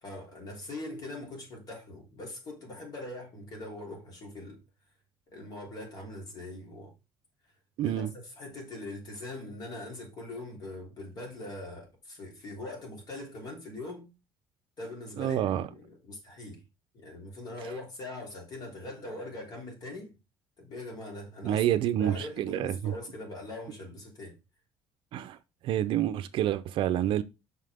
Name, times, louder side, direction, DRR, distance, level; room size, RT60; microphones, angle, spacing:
voice 1, 0.0-4.6 5.3-6.9 7.8-14.1 14.8-16.6 16.9-20.1 20.6-24.4, left 2 dB, 45° left, 3.3 m, -42 dB
voice 2, 7.8-8.1 15.2-15.6 21.4-22.9 25.1-25.4 25.6-27.2, right 11 dB, 65° right, 0.6 m, -28 dB
6.0 x 5.6 x 3.5 m
cardioid pair, 145°, 10 cm